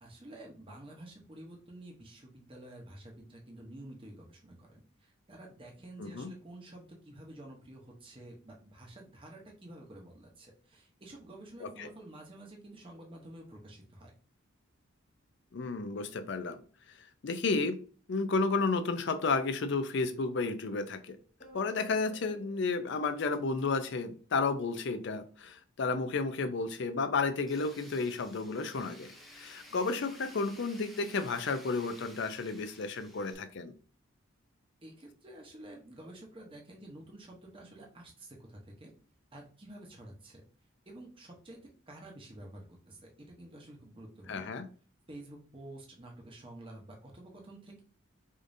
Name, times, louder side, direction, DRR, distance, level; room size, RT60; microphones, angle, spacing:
voice 1, 0.0-14.1 34.8-38.9 39.3-40.4 40.9-41.6 41.9-44.5 45.1-47.8, right 1 dB, 25° right, 0.8 m, -50 dB
voice 2, 15.5-16.6 17.2-17.8 18.1-21.2 21.5-33.7 44.3-44.7, left 4 dB, 60° left, 0.5 m, -32 dB
sound 1, 21.4-24.0, left 3 dB, 35° left, 0.8 m, -55 dB
Tools, 27.5-33.3, equal, ahead, 0.5 m, -54 dB
5.0 x 2.6 x 2.6 m
head